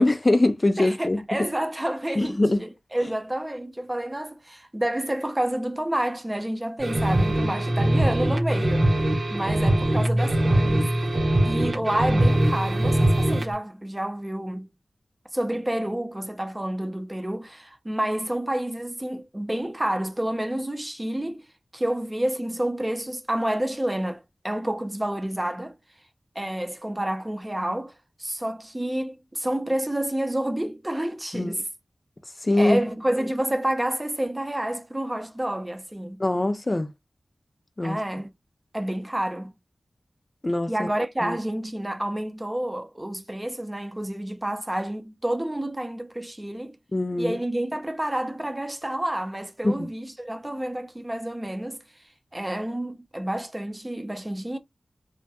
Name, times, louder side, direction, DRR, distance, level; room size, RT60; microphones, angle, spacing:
voice 1, 0.0-1.2 2.2-2.6 31.3-31.6 32.4-32.8 36.2-36.9 37.8-38.0 40.4-40.9 41.2-41.4 46.9-47.4 49.6-49.9, left 2 dB, 35° left, 0.3 m, -22 dB
voice 2, 0.8-10.9 11.4-14.7 15.3-21.4 21.7-25.7 26.4-27.9 28.2-31.6 32.6-36.2 37.8-38.3 38.7-39.5 40.7-46.8 47.2-51.8 52.3-54.6, right 1 dB, 20° right, 0.5 m, -29 dB
sound 1, 6.8-13.5, right 1 dB, 55° right, 0.7 m, -22 dB
2.2 x 2.1 x 2.7 m
wide cardioid pair, 65°, 0 cm